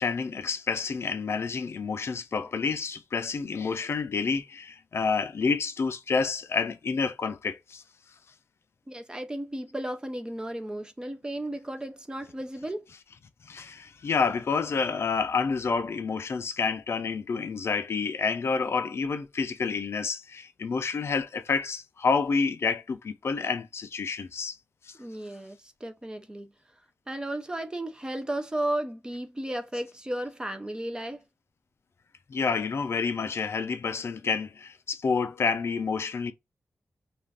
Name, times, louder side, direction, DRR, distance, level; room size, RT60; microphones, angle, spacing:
voice 1, 0.0-7.8 13.5-24.6 24.9-25.0 32.3-36.3, left 5 dB, 60° left, 0.4 m, -29 dB
voice 2, 8.9-12.9 25.0-26.5 27.1-31.2, right 1 dB, 15° right, 0.4 m, -34 dB
2.4 x 2.3 x 3.3 m
wide cardioid pair, 130°, 5 cm